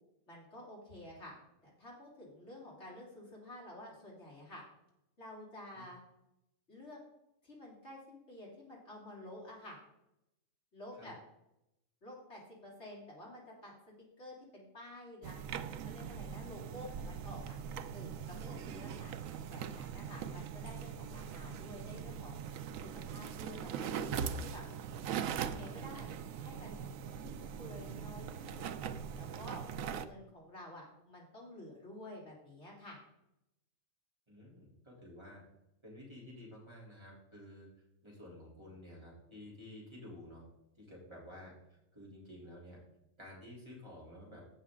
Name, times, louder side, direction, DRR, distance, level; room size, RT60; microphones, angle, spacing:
voice 1, 0.3-1.3 1.6-4.6 5.2-6.0 6.7-7.0 7.4-9.8 10.7-11.1 12.0-13.7 14.2-15.4 15.8-17.6 17.9-19.1 19.5-22.4 22.8-24.6 25.4-26.8 27.2-28.7 29.1-33.0, left 1 dB, 55° left, -4 dB, 3.3 m, -50 dB
sound 1, 15.2-30.1, right 7 dB, 80° right, 1.0 m, -41 dB
voice 2, 34.3-35.4 35.8-37.7 38.0-40.4 40.8-42.8 43.2-44.5, left 1 dB, 20° right, -6 dB, 3.3 m, -52 dB
15.5 x 5.7 x 3.7 m, 0.86 s
omnidirectional pair, 1.4 m